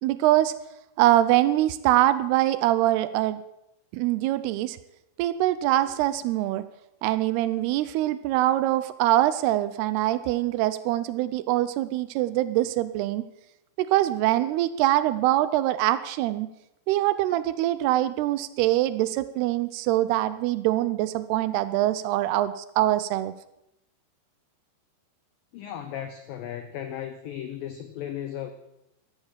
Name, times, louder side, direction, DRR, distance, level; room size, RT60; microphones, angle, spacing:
voice 1, 0.0-0.5 1.0-3.4 3.9-4.8 5.2-6.7 7.0-13.2 13.8-16.5 16.9-23.3, right 14 dB, 85° right, 14 dB, 2.3 m, -24 dB
voice 2, 25.5-28.5, left 10 dB, 90° left, 9 dB, 2.0 m, -35 dB
14.5 x 13.0 x 7.4 m, 0.83 s
omnidirectional pair, 5.5 m